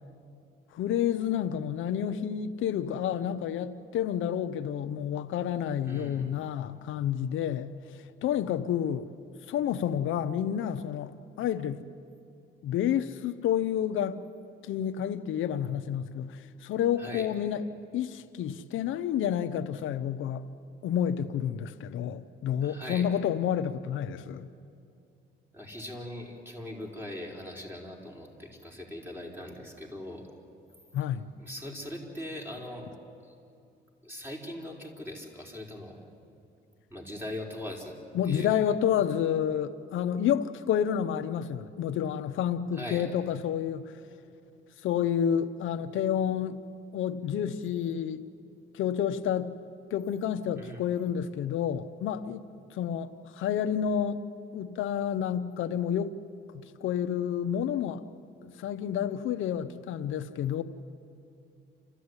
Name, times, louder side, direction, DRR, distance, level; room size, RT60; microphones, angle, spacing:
voice 1, 0.7-7.7 8.2-9.1 9.5-11.8 12.6-14.2 14.6-17.6 17.9-20.5 20.8-24.5 30.9-31.3 38.1-43.9 44.8-46.6 46.9-48.2 48.7-49.5 49.9-52.4 52.7-54.2 54.5-56.2 56.5-58.0 58.4-60.6, left 9 dB, 80° left, 0.8 m, -29 dB
voice 2, 5.8-6.3 17.0-17.3 22.6-23.1 25.5-30.3 31.4-32.9 33.2-33.3 34.0-36.0 36.9-37.9 38.2-38.6 42.7-43.1 50.6-50.8, left 1 dB, 10° right, 4.9 m, -40 dB
29.0 x 14.0 x 9.7 m
cardioid pair, 90°, 20 cm